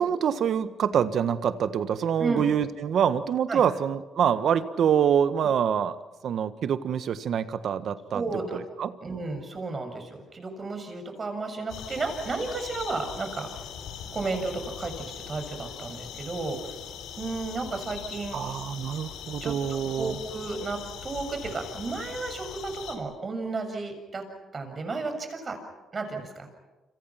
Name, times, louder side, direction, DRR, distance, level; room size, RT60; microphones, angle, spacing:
voice 1, 0.0-6.0 6.2-8.2 8.5-8.9 18.3-20.2, right 8 dB, 65° right, 11 dB, 1.5 m, -25 dB
voice 2, 8.1-8.6 9.0-13.5 14.1-14.9 15.3-16.7 17.2-18.4 19.4-24.2 24.5-25.6 25.9-26.5, right 3 dB, 35° right, 6 dB, 7.0 m, -33 dB
sound 1, 11.7-23.0, left 8 dB, 90° left, 3.9 m, -41 dB
29.5 x 27.0 x 5.9 m, 1.1 s
cardioid pair, 90°, 0 cm